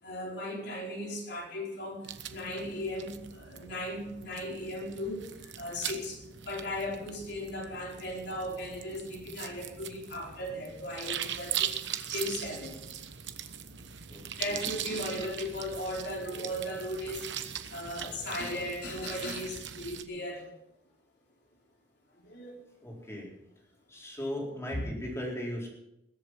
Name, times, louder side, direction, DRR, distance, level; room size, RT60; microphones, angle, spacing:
voice 1, 0.0-11.7 12.1-12.8 14.4-17.2 17.7-20.5 22.2-22.5 24.7-24.8, left 1 dB, 60° left, -1 dB, 4.3 m, -37 dB
sound 1, 2.0-20.0, right 9 dB, 75° right, 1.0 m, -40 dB
voice 2, 14.1-14.6 22.8-23.3 23.9-25.7, left 1 dB, 15° left, -2 dB, 4.3 m, -37 dB
21.0 x 8.1 x 6.1 m, 0.82 s
head